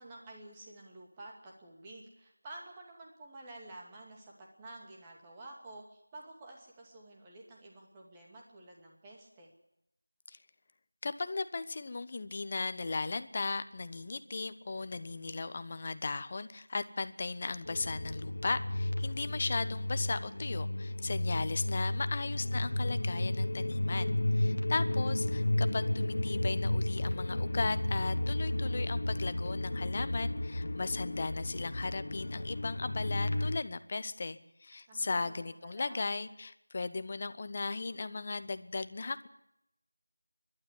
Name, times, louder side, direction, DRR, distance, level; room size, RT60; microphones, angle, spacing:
voice 1, 0.0-9.5 21.6-22.0 34.9-36.2, right 2 dB, 10° right, -2 dB, 2.6 m, -51 dB
voice 2, 11.0-39.3, left 3 dB, 30° left, 12 dB, 0.9 m, -37 dB
sound 1, 17.6-33.6, left 1 dB, 55° left, 1.5 m, -33 dB
28.0 x 12.0 x 9.9 m, 0.85 s
figure-of-eight pair, 170°, 0 cm